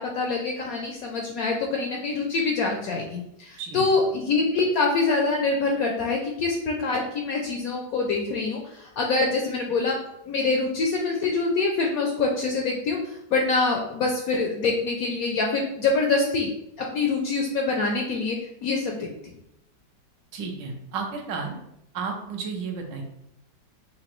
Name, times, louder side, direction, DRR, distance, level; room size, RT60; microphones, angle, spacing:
voice 1, 0.0-10.0 10.3-16.5 16.9-18.4 18.6-19.1, left 3 dB, 75° left, 1 dB, 0.8 m, -25 dB
voice 2, 20.3-21.6 21.9-23.0, right 5 dB, 75° right, 3 dB, 1.4 m, -32 dB
5.9 x 2.5 x 3.0 m, 0.80 s
omnidirectional pair, 2.0 m